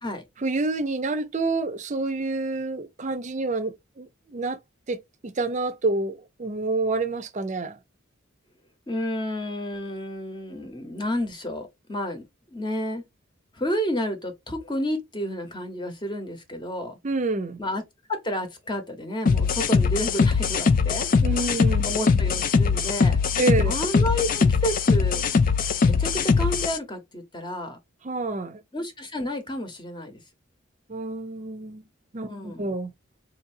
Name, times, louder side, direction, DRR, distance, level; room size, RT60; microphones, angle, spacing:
voice 1, 0.4-4.6 4.9-5.0 5.2-7.8 17.0-17.6 21.2-21.8 23.4-23.8 28.0-28.6 30.9-31.9 32.1-32.9, right 3 dB, 35° right, 0.6 m, -28 dB
voice 2, 8.9-13.0 13.5-17.0 17.6-17.8 18.1-21.1 21.3-23.2 23.6-25.3 25.8-27.8 28.7-30.2 32.3-32.7, equal, 25° left, 0.9 m, -31 dB
sound 1, 19.3-26.8, left 5 dB, 45° left, 0.4 m, -21 dB
4.3 x 2.7 x 2.6 m
head